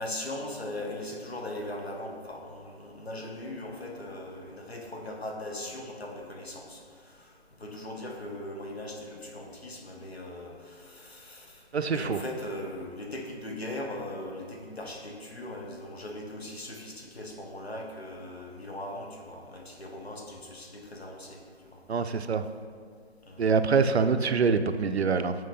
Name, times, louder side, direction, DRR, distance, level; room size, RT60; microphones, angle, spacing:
voice 1, 0.0-7.3 7.6-21.4 21.7-21.8 23.3-23.4, left 1 dB, 70° left, 1 dB, 1.3 m, -39 dB
voice 2, 11.7-12.2 21.9-22.4 23.4-25.3, right 5 dB, 75° right, 10 dB, 0.5 m, -25 dB
7.7 x 4.6 x 4.1 m, 2.1 s
figure-of-eight pair, 150°, 33 cm